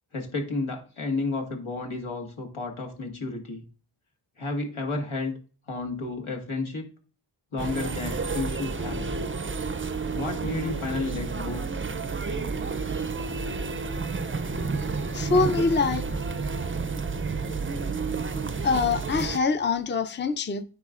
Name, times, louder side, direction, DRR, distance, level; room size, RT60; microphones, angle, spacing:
voice 1, 0.1-3.6 4.4-5.3 5.7-6.9 7.5-9.0 10.1-11.6, left 3 dB, 75° left, 1.7 m, -31 dB
sound 1, 7.6-19.4, right 4 dB, 25° right, 0.5 m, -30 dB
voice 2, 15.1-16.1 18.6-20.6, left 4 dB, 25° left, 0.5 m, -24 dB
9.6 x 4.0 x 2.4 m
wide cardioid pair, 45°, 49 cm